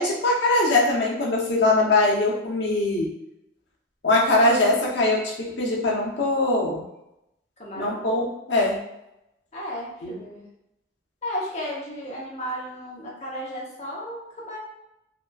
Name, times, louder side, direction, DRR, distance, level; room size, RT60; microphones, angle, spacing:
voice 1, 0.0-3.1 4.0-6.8 7.8-8.8 10.0-10.2, left 2 dB, 80° left, -2 dB, 0.6 m, -22 dB
voice 2, 7.6-8.0 9.5-10.4 11.2-14.6, equal, 35° left, -4 dB, 0.6 m, -34 dB
2.8 x 2.3 x 2.2 m, 0.87 s
head